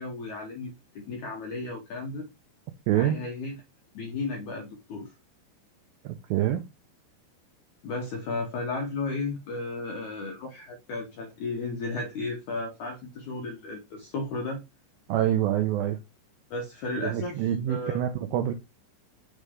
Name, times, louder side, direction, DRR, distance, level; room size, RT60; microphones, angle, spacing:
voice 1, 0.0-2.3 2.9-3.6 3.9-5.1 7.8-14.6 16.5-18.0, left 3 dB, 90° left, 1.7 m, -34 dB
voice 2, 2.9-3.2 6.0-6.6 15.1-16.0 17.0-18.5, right 11 dB, 85° right, 2.2 m, -26 dB
6.6 x 3.2 x 5.0 m
omnidirectional pair, 4.8 m